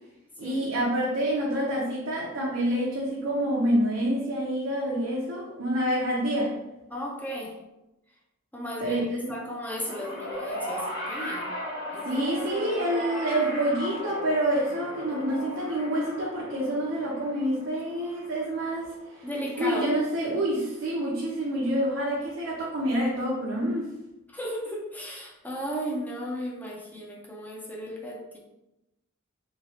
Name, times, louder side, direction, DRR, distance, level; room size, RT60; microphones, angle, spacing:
voice 1, 0.4-6.6 8.8-9.4 12.0-18.9 19.5-23.9, right 1 dB, 70° right, -5 dB, 0.6 m, -27 dB
voice 2, 6.9-7.5 8.5-11.5 11.9-12.2 19.2-19.9 24.3-28.4, equal, 10° left, -2 dB, 0.5 m, -35 dB
sound 1, 9.8-20.2 21.2-21.3, equal, 60° left, 1.1 m, -37 dB
3.0 x 2.9 x 2.8 m, 0.95 s
head